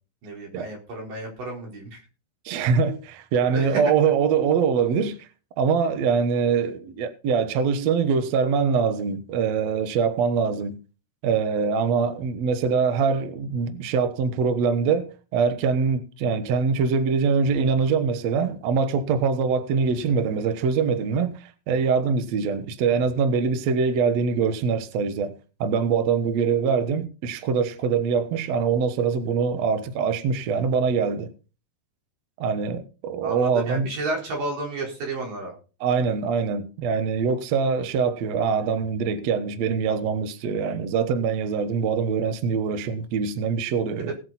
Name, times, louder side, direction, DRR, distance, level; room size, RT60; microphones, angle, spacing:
voice 1, 0.2-2.0 3.5-3.8 33.2-35.5 44.1-44.2, right 2 dB, 50° right, 5.9 m, -31 dB
voice 2, 2.4-5.3 5.6-10.8 11.2-25.3 25.6-31.3 32.4-33.9 35.8-44.1, right 5 dB, 90° right, 1.5 m, -23 dB
19.0 x 7.7 x 4.2 m
omnidirectional pair, 4.9 m